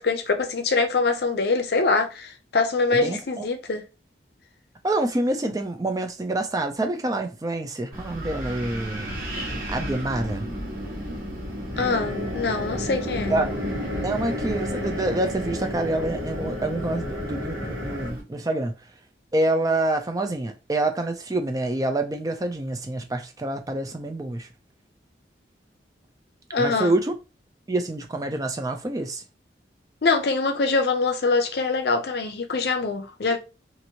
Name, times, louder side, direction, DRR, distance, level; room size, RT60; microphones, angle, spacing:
voice 1, 0.0-3.8 11.8-13.4 26.5-27.0 30.0-33.4, left 3 dB, 60° left, 0.5 m, -24 dB
voice 2, 2.9-3.5 4.8-9.2 9.5-10.5 13.3-13.6 14.0-18.7 19.3-24.5 26.6-27.1 27.7-29.2, right 2 dB, 20° right, 0.3 m, -27 dB
Wind, 7.9-18.2, equal, 45° right, 1.5 m, -33 dB
sound 1, 11.7-18.1, left 1 dB, 80° right, 1.2 m, -33 dB
2.8 x 2.5 x 2.7 m
head